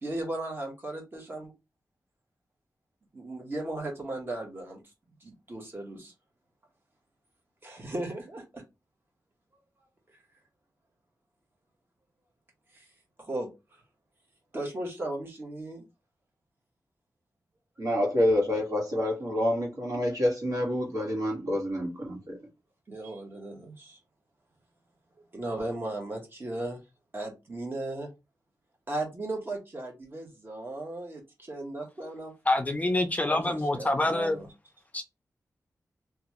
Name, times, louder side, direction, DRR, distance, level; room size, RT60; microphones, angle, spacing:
voice 1, 0.0-1.5 3.1-4.8 5.2-6.1 7.6-8.6 12.7-12.8 13.2-13.5 14.5-15.8 22.9-24.0 25.3-26.8 27.1-28.1 28.9-32.3 33.3-34.5, right 2 dB, 35° right, 1.0 m, -36 dB
voice 2, 17.8-22.4, left 1 dB, 60° right, 1.4 m, -27 dB
voice 3, 32.5-34.4 34.9-35.0, left 2 dB, 20° left, 0.4 m, -26 dB
2.9 x 2.3 x 2.9 m
wide cardioid pair, 130°, 7 cm